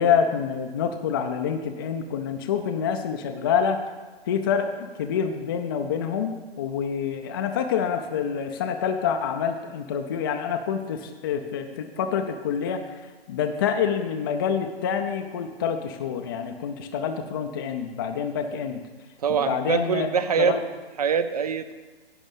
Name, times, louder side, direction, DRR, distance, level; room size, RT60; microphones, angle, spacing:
voice 1, 0.0-3.8 4.3-12.8 13.3-18.8 19.3-20.6, left 7 dB, 20° left, 6 dB, 0.4 m, -27 dB
voice 2, 19.2-20.6 21.0-21.7, right 6 dB, 40° right, 11 dB, 0.4 m, -24 dB
11.0 x 5.0 x 7.2 m, 1.3 s
figure-of-eight pair, 135°, 31 cm